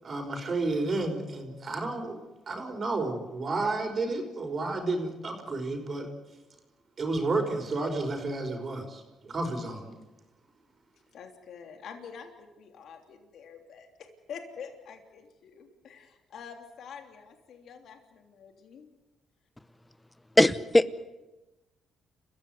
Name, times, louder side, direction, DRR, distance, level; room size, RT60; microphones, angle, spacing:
voice 1, 0.0-2.2 2.5-6.1 7.0-10.0, right 2 dB, 40° right, 3 dB, 5.3 m, -31 dB
voice 2, 11.1-13.9 14.3-18.9, left 6 dB, 70° left, 5 dB, 3.2 m, -46 dB
voice 3, 20.4-21.0, left 1 dB, 10° left, 15 dB, 1.0 m, -21 dB
29.5 x 15.5 x 9.4 m, 1.1 s
cardioid pair, 90°, 0 cm